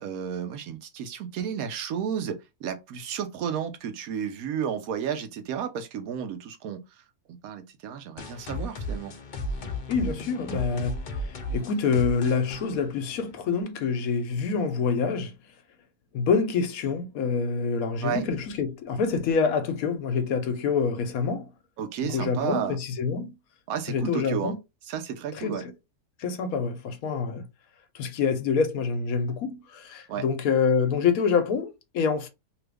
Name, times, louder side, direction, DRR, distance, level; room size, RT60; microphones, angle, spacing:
voice 1, 0.0-6.8 7.3-9.1 18.0-18.3 21.8-22.8 23.7-24.6 24.9-25.7 30.1-30.2, right 8 dB, 70° right, 1.1 m, -32 dB
sound 1, 8.2-13.6, left 1 dB, 85° left, 0.4 m, -35 dB
voice 2, 9.9-11.0 11.5-15.3 16.1-21.5 22.0-23.3 23.9-24.6 25.4-25.6 26.2-27.4 28.0-32.3, left 5 dB, 70° left, 1.0 m, -26 dB
2.9 x 2.4 x 3.3 m
omnidirectional pair, 1.7 m